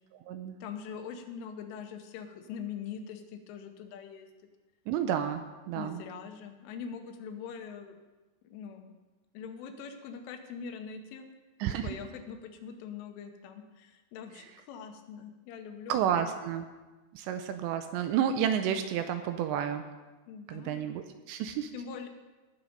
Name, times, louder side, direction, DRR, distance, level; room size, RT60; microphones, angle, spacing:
voice 1, 0.6-4.3 5.8-8.0 8.5-8.9 9.4-11.3 11.8-16.2 20.3-20.9 21.7-22.1, left 7 dB, 85° left, 6 dB, 3.6 m, -43 dB
voice 2, 4.9-6.0 11.6-11.9 15.9-16.7 17.1-19.8 20.5-21.7, right 9 dB, 80° right, 8 dB, 2.7 m, -31 dB
18.5 x 7.3 x 5.2 m, 1.2 s
omnidirectional pair, 5.5 m